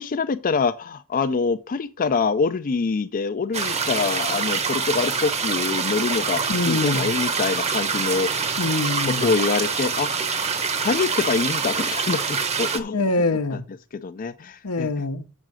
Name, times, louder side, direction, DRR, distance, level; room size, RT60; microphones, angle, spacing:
voice 1, 0.0-8.5 9.1-10.3 10.8-13.0 14.0-14.9, left 4 dB, 40° left, 0.4 m, -25 dB
sound 1, 3.5-12.8, right 5 dB, 30° right, 0.9 m, -25 dB
voice 2, 6.5-7.1 8.6-9.3 12.9-13.6 14.6-15.2, left 2 dB, 80° left, 0.9 m, -24 dB
6.5 x 6.2 x 6.1 m
head